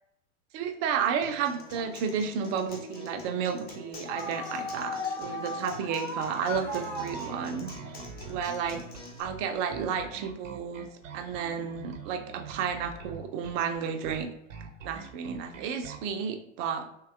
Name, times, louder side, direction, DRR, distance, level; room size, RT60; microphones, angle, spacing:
voice 1, 0.5-7.7 8.3-8.8 9.2-10.9 11.1-14.3 14.8-16.9, right 7 dB, 30° right, 6 dB, 0.4 m, -32 dB
Acoustic guitar, 1.2-9.2, left 2 dB, 25° left, 0.7 m, -46 dB
sound 1, 1.7-7.4, left 1 dB, 55° left, 1.3 m, -38 dB
Bass guitar, 6.5-16.1, right 6 dB, 80° right, 0.7 m, -45 dB
3.6 x 2.8 x 2.4 m, 0.81 s
hypercardioid pair, 100°, 38 cm